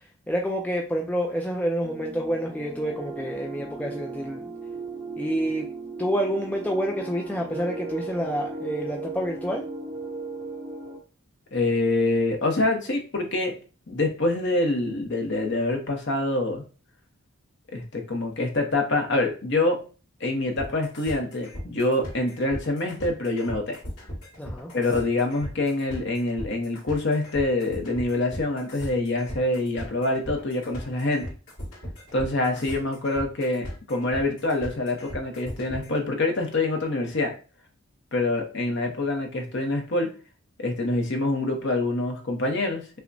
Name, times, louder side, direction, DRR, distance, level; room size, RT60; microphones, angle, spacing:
voice 1, 0.3-4.4 5.2-5.7 6.0-9.7 24.4-24.7, equal, 5° left, 0 dB, 0.3 m, -28 dB
sound 1, 1.8-11.0, right 3 dB, 10° right, 0.9 m, -37 dB
voice 2, 11.5-13.5 13.9-16.6 17.7-19.8 20.2-23.8 24.7-31.3 32.1-37.3 38.1-40.1 40.6-42.8, left 2 dB, 55° left, 3 dB, 0.8 m, -25 dB
sound 2, 20.6-36.0, equal, 80° left, 1.9 m, -37 dB
5.7 x 2.1 x 2.6 m, 0.35 s
head